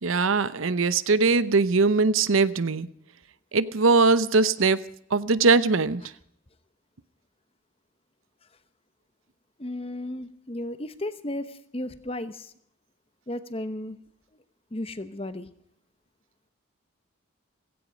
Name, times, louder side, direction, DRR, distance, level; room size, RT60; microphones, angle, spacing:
voice 1, 0.0-2.9 3.5-4.8 5.1-6.0, right 4 dB, 80° right, 15 dB, 0.8 m, -21 dB
voice 2, 9.6-12.5 13.3-14.0 14.7-15.5, left 1 dB, 30° left, 12 dB, 0.9 m, -34 dB
17.0 x 16.5 x 5.1 m, 0.68 s
head